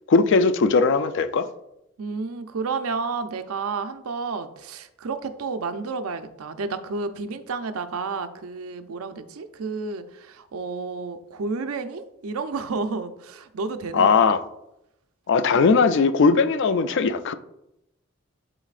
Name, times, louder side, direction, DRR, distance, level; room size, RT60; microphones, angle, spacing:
voice 1, 0.1-1.5 13.9-14.4 15.3-17.3, left 4 dB, 60° left, 0.4 m, -19 dB
voice 2, 2.0-14.3, right 4 dB, 85° right, 0.5 m, -31 dB
11.0 x 4.0 x 2.4 m
head